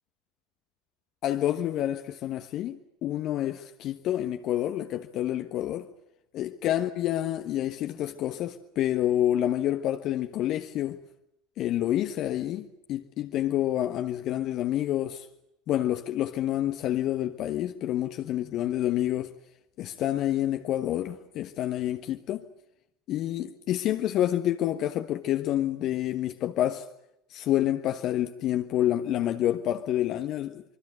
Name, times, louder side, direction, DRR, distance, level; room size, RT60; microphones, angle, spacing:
voice 1, 1.2-5.9 6.3-11.0 11.6-15.3 15.7-19.3 19.8-22.4 23.1-26.9 27.3-30.6, left 12 dB, 50° left, 1.3 m, -28 dB
25.5 x 24.0 x 7.7 m
figure-of-eight pair, 70°, 0 cm